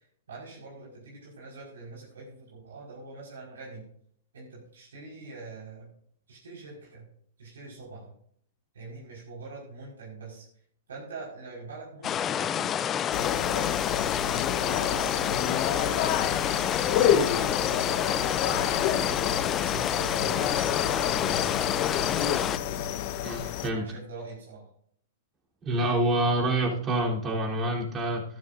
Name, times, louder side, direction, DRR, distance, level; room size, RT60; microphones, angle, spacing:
voice 1, 0.0-3.9 4.3-5.9 6.3-7.0 7.4-8.1 8.7-10.5 10.9-12.7 13.1-16.5 16.9-18.0 18.5-22.5 23.7-24.7, right 3 dB, 85° right, -5 dB, 5.0 m, -44 dB
sound 1, 12.0-22.6, left 9 dB, 25° left, 0.4 m, -29 dB
sound 2, 13.1-23.7, left 9 dB, 45° left, 1.0 m, -28 dB
voice 2, 23.2-23.9 25.6-28.2, right 1 dB, 25° right, -2 dB, 3.5 m, -27 dB
14.5 x 12.0 x 2.6 m, 0.64 s
hypercardioid pair, 125°, 0 cm